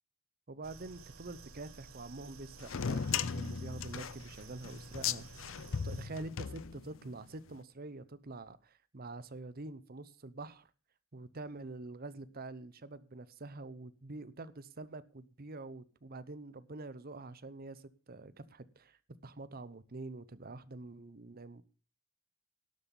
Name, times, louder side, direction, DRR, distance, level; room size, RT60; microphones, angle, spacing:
voice 1, 0.5-5.4 5.8-10.7 11.1-19.0 19.2-21.6, right 2 dB, 45° right, 0.9 m, -46 dB
sound 1, 0.6-6.1, right 4 dB, 80° right, 1.2 m, -53 dB
sound 2, 2.6-7.2, left 7 dB, 65° left, 0.6 m, -37 dB
12.0 x 8.1 x 7.1 m
head